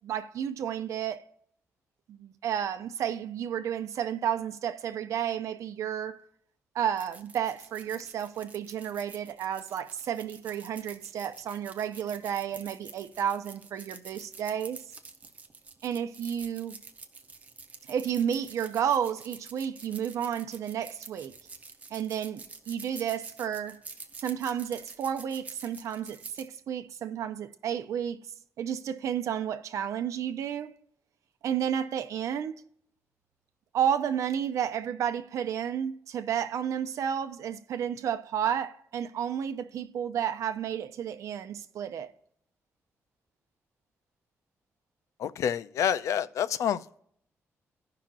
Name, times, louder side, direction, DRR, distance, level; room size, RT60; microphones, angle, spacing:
voice 1, 0.0-1.2 2.1-6.2 6.7-14.8 15.8-16.8 17.9-21.3 21.9-23.8 24.2-28.2 28.6-30.7 31.4-32.6 33.7-42.1, right 9 dB, 85° right, 0.7 m, -31 dB
sound 1, 7.0-26.5, right 4 dB, 30° right, 0.8 m, -48 dB
voice 2, 45.2-47.0, left 9 dB, 80° left, 0.4 m, -28 dB
16.0 x 5.8 x 2.5 m
wide cardioid pair, 155°, 5 cm